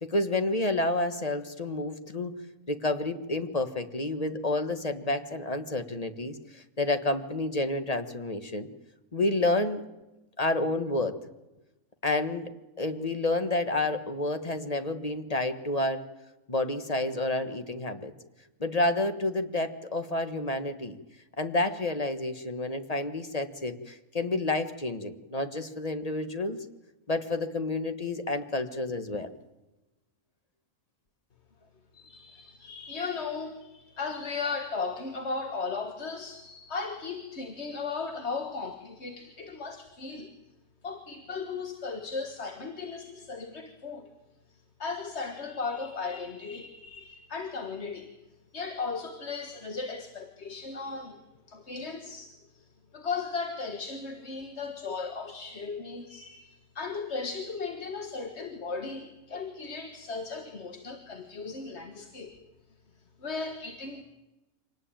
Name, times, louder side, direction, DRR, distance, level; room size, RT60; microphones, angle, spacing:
voice 1, 0.0-2.3 2.7-8.7 9.1-9.8 10.4-11.1 12.0-12.5 12.8-16.0 16.5-18.1 18.6-21.0 21.4-26.6 27.1-29.3, left 2 dB, 25° left, 8 dB, 1.5 m, -29 dB
voice 2, 31.9-40.3 40.8-44.1 44.8-48.1 48.5-51.2 51.5-52.6 52.9-62.3 63.2-64.0, left 4 dB, 45° left, 6 dB, 1.8 m, -36 dB
25.5 x 19.0 x 9.0 m, 1.0 s
omnidirectional pair, 1.6 m